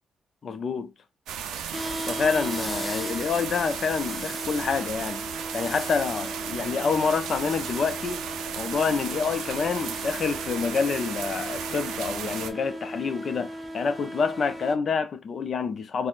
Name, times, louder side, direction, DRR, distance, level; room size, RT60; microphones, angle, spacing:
voice 1, 0.4-0.9 2.1-5.2 5.5-8.2 8.6-16.1, left 5 dB, 55° left, 0.5 m, -27 dB
sound 1, 1.3-12.5, right 8 dB, 90° right, 0.4 m, -35 dB
sound 2, 1.7-14.7, equal, 5° left, 0.8 m, -37 dB
4.1 x 2.1 x 2.4 m
cardioid pair, 70°, 0 cm